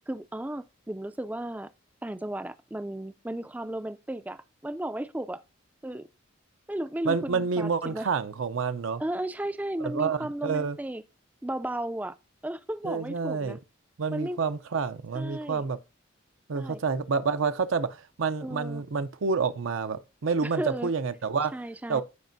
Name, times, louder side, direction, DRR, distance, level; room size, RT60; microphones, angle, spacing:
voice 1, 0.1-1.7 2.0-5.4 5.8-6.1 6.7-8.1 9.0-11.0 11.4-12.2 12.4-13.6 14.1-14.4 15.1-15.6 16.5-16.8 18.4-18.8 20.4-20.9 21.5-22.0, right 1 dB, 10° right, 0.3 m, -34 dB
voice 2, 7.0-9.0 9.8-10.8 12.8-13.6 14.0-15.8 16.5-21.5 21.9-22.0, right 5 dB, 80° right, 0.6 m, -28 dB
14.5 x 5.1 x 2.6 m
head